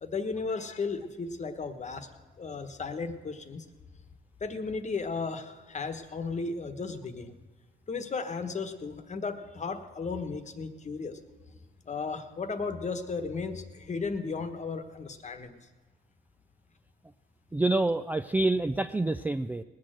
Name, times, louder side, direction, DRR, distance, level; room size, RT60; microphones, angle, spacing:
voice 1, 0.0-2.1 2.4-3.6 4.4-7.3 7.9-11.2 11.9-15.5, left 4 dB, 35° left, 8 dB, 1.2 m, -35 dB
voice 2, 17.5-19.6, right 2 dB, 10° right, 8 dB, 0.3 m, -27 dB
19.0 x 6.6 x 7.8 m, 1.3 s
cardioid pair, 90°, 20 cm